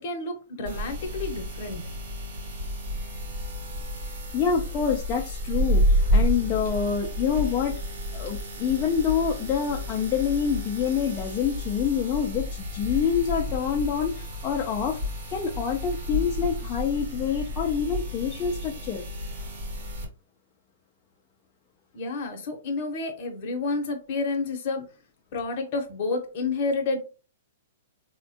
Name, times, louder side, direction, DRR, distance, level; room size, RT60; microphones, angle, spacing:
voice 1, 0.0-1.8 21.9-24.8 25.3-27.1, left 3 dB, 35° left, 3 dB, 0.8 m, -30 dB
sound 1, 0.6-20.0, equal, 45° right, 0.9 m, -30 dB
voice 2, 4.0-15.0 15.3-19.0, left 7 dB, 20° left, 0 dB, 0.3 m, -27 dB
4.2 x 2.1 x 2.7 m, 0.33 s
hypercardioid pair, 175°, 0 cm